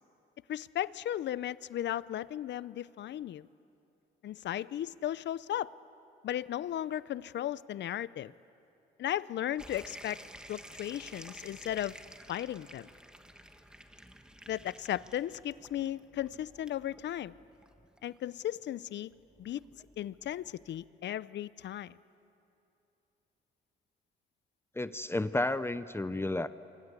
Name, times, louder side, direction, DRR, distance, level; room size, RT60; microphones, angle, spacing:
voice 1, 0.5-3.5 4.2-5.7 6.2-8.3 9.0-10.2 10.5-12.0 12.3-12.9 14.5-17.3 18.0-19.1 19.4-19.6 20.0-22.0, left 12 dB, 65° left, 18 dB, 0.6 m, -36 dB
sound 1, 9.6-20.9, equal, 5° right, 1.6 m, -52 dB
voice 2, 24.8-26.5, left 2 dB, 10° left, 13 dB, 0.7 m, -32 dB
28.0 x 24.5 x 8.2 m, 2.9 s
cardioid pair, 90°, 20 cm